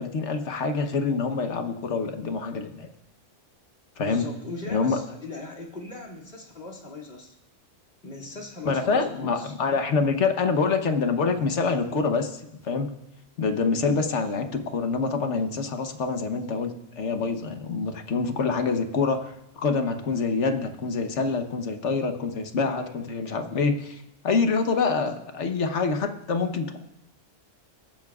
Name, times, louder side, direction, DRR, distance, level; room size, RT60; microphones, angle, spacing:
voice 1, 0.0-2.9 4.0-4.3 4.7-5.0 8.6-12.9 13.4-26.8, left 4 dB, 65° left, 6 dB, 1.3 m, -26 dB
voice 2, 4.0-7.3 8.0-9.5 22.6-23.0, left 2 dB, 50° left, 0 dB, 2.6 m, -39 dB
22.5 x 9.9 x 2.4 m, 0.88 s
omnidirectional pair, 1.3 m